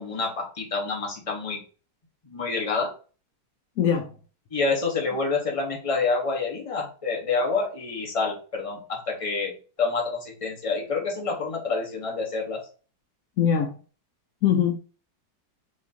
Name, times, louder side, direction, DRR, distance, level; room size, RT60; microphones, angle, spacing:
voice 1, 0.0-1.6 2.2-2.9 4.5-12.6, left 4 dB, 25° left, 0.8 m, -28 dB
voice 2, 3.8-4.1 13.4-13.8 14.4-14.8, left 8 dB, 85° left, 0.7 m, -22 dB
4.9 x 2.9 x 2.7 m
omnidirectional pair, 2.0 m